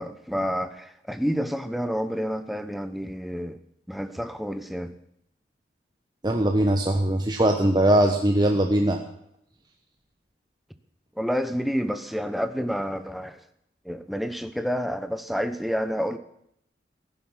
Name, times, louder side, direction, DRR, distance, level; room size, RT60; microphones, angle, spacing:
voice 1, 0.0-3.6 3.9-4.9 11.2-13.4 13.8-16.2, equal, ahead, 10 dB, 1.0 m, -29 dB
voice 2, 6.2-9.0, right 1 dB, 25° right, 3 dB, 1.2 m, -21 dB
15.5 x 11.5 x 7.4 m, 0.74 s
head